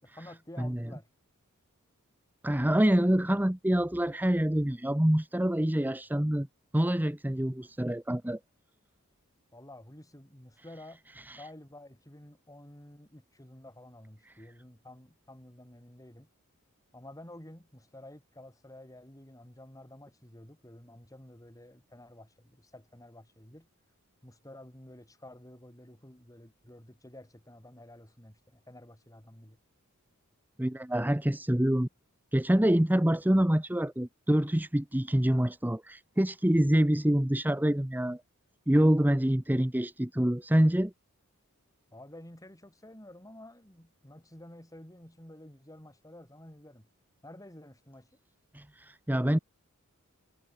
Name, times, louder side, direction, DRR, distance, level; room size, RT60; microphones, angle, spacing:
voice 1, 0.0-1.1 9.5-11.0 11.3-16.3 16.9-23.7 24.2-29.6 41.9-46.9 47.2-48.1, left 1 dB, 15° left, 6.5 m, -51 dB
voice 2, 2.4-6.5 6.7-8.4 11.3-11.4 30.6-31.9 32.3-38.2 38.7-40.9 48.5-49.4, right 1 dB, 10° right, 0.9 m, -26 dB
head